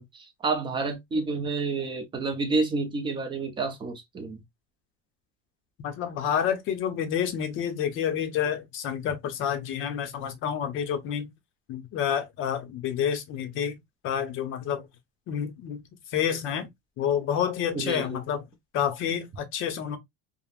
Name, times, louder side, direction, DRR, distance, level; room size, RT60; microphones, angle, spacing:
voice 1, 0.0-4.4 17.7-18.2, right 3 dB, 15° right, 0.4 m, -29 dB
voice 2, 5.8-11.3 11.7-13.8 14.0-14.9 15.3-15.8 16.1-16.7 17.0-18.5 18.7-20.0, left 8 dB, 40° left, 0.6 m, -29 dB
3.3 x 2.0 x 2.3 m
cardioid pair, 165°, 33 cm